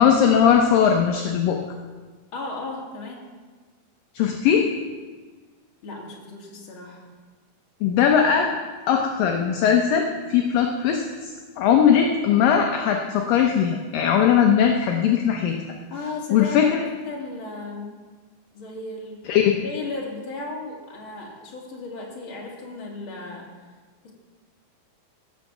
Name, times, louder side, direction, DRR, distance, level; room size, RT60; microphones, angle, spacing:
voice 1, 0.0-1.6 4.1-4.7 7.8-8.5 8.9-15.6 16.3-16.9 19.3-19.6, left 8 dB, 75° left, 3 dB, 2.3 m, -19 dB
voice 2, 2.3-3.2 5.8-7.1 15.9-16.7 17.0-18.0 18.5-19.2 19.6-23.5 24.0-24.1, left 3 dB, 35° left, -2 dB, 2.7 m, -35 dB
17.0 x 6.8 x 7.3 m, 1.4 s
omnidirectional pair, 4.6 m